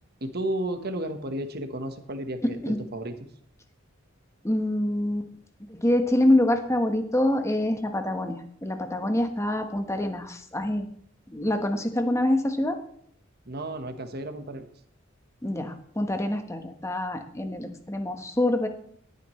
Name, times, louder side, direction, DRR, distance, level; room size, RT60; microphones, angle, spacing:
voice 1, 0.2-3.2 13.5-14.7, right 1 dB, 50° right, 7 dB, 1.3 m, -33 dB
voice 2, 4.4-5.3 5.7-10.9 11.3-12.8 15.4-18.7, left 1 dB, 15° left, 6 dB, 1.2 m, -26 dB
19.5 x 9.5 x 3.2 m, 0.63 s
head